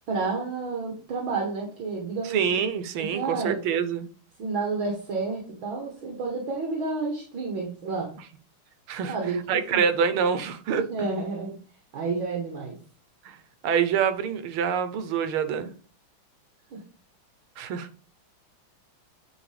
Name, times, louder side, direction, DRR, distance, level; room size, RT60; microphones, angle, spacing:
voice 1, 0.1-2.4 3.1-3.6 4.4-8.1 9.0-9.4 9.7-9.9 10.9-11.6 11.9-12.8 16.7-16.8, right 4 dB, 70° right, 2.1 m, -30 dB
voice 2, 2.2-4.1 8.9-9.2 9.5-11.1 13.2-13.4 13.6-15.7 17.6-17.9, right 7 dB, 90° right, 1.6 m, -26 dB
8.9 x 4.6 x 3.3 m
omnidirectional pair, 2.3 m